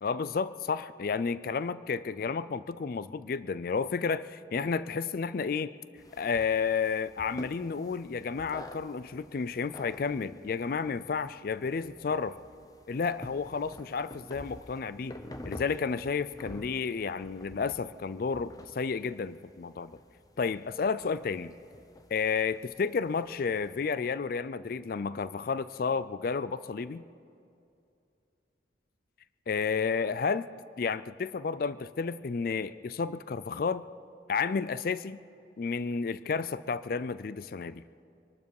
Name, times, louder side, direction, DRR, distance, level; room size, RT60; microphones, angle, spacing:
voice 1, 0.0-5.7 6.2-12.4 12.9-15.2 15.5-20.0 20.4-21.5 22.1-27.0 29.5-30.5 30.8-33.8 34.3-35.2 35.6-37.8, left 5 dB, 50° left, 15 dB, 0.4 m, -31 dB
sound 1, 6.0-23.8, left 1 dB, 20° left, 0.7 m, -49 dB
24.0 x 12.5 x 4.8 m, 2.6 s
head